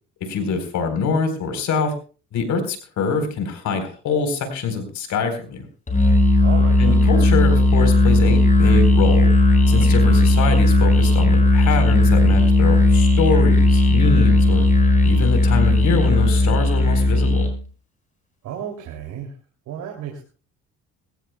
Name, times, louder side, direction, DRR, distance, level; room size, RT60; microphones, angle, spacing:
voice 1, 0.3-1.9 2.3-5.7 6.8-9.3 9.7-14.7 15.0-17.4, left 4 dB, 65° left, 7 dB, 4.2 m, -24 dB
Musical instrument, 5.9-17.6, left 2 dB, 25° left, 5.3 m, -16 dB
voice 2, 6.4-7.0 18.4-19.3 19.7-20.2, right 9 dB, 75° right, 2 dB, 3.0 m, -33 dB
22.0 x 16.0 x 2.3 m, 0.37 s
supercardioid pair, 85°, 31 cm